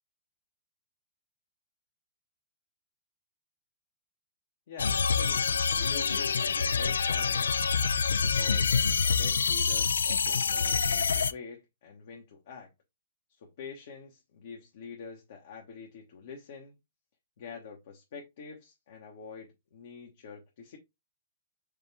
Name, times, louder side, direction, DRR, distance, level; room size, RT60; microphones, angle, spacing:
voice 1, 4.7-7.6 8.0-12.7 13.3-16.8 17.4-20.8, left 5 dB, 65° left, 1.1 m, -46 dB
sound 1, 4.8-11.3, left 5 dB, 85° left, 0.3 m, -26 dB
5.0 x 2.5 x 3.4 m
hypercardioid pair, 125°, 0 cm